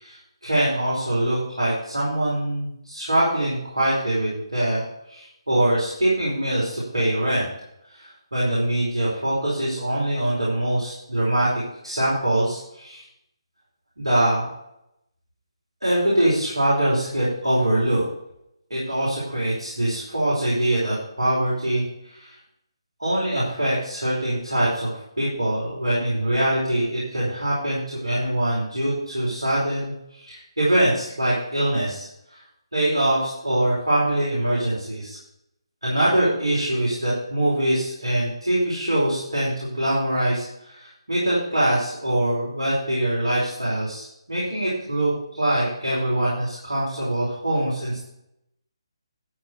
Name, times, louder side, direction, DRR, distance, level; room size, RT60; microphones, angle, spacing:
voice 1, 0.0-7.5 7.9-13.0 14.0-14.5 15.8-18.0 18.7-22.4 23.0-32.4 32.7-35.2 35.8-48.0, right 1 dB, 80° right, -7 dB, 4.6 m, -23 dB
13.0 x 4.7 x 6.7 m, 0.81 s
figure-of-eight pair, 145°, 3 cm